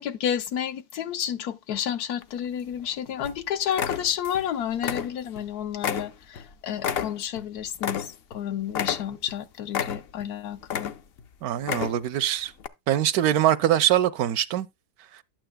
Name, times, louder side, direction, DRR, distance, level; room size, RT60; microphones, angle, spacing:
voice 1, 0.0-10.9, left 9 dB, 75° left, 1.3 m, -31 dB
sound 1, 2.2-2.9 3.2-3.4 3.7-4.5 4.7-5.5 5.8-8.4 8.7-9.3 9.7-10.3 10.6-11.2 11.6-12.2 12.6-12.7, left 8 dB, 55° left, 0.7 m, -30 dB
voice 2, 11.4-12.5 12.9-14.7, right 12 dB, 75° right, 1.1 m, -23 dB
12.0 x 8.8 x 2.2 m
omnidirectional pair, 1.7 m